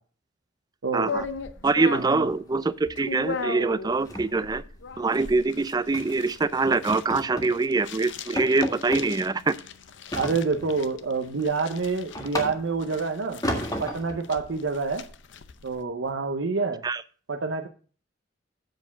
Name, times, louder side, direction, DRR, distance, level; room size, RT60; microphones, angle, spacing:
voice 1, 0.9-1.3 1.6-4.6 5.0-9.6 16.8-17.0, right 3 dB, 20° right, 15 dB, 0.4 m, -24 dB
sound 1, 1.1-15.8, left 4 dB, 65° left, 0.6 m, -39 dB
sound 2, 1.2-2.0 2.3-2.5 2.8-3.1 3.3-3.4 3.8-5.4 5.9-6.2 6.7-7.6 7.9-8.0 8.4-9.1 10.1-10.8 11.3-12.9 13.4-14.2, equal, 20° left, 1.8 m, -33 dB
voice 2, 1.9-2.3 10.2-13.4 13.8-15.0 15.6-16.8 17.3-17.7, right 4 dB, 75° right, 4 dB, 0.7 m, -27 dB
7.9 x 4.6 x 7.1 m, 0.41 s
head